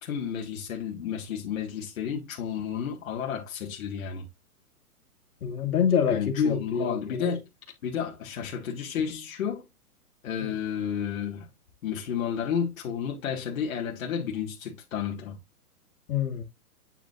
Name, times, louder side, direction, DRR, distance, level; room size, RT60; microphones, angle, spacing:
voice 1, 0.0-4.3 6.1-7.5 7.8-9.7 10.2-11.5 11.8-15.4, left 8 dB, 60° left, 1.8 m, -32 dB
voice 2, 5.4-7.3 10.4-10.5 16.1-16.4, left 7 dB, 75° left, 2.2 m, -26 dB
8.8 x 5.2 x 2.4 m
hypercardioid pair, 150°, 45 cm